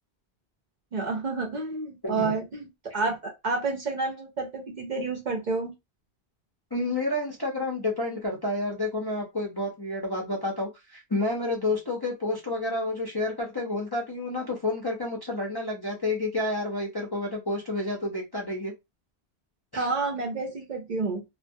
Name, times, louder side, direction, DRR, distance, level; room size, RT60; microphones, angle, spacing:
voice 1, 0.9-5.7 19.8-21.2, right 3 dB, 55° right, 1 dB, 0.6 m, -29 dB
voice 2, 2.0-2.4 6.7-18.7 19.7-19.9, left 2 dB, 30° left, -3 dB, 0.4 m, -30 dB
2.2 x 2.1 x 2.6 m, 0.22 s
omnidirectional pair, 1.1 m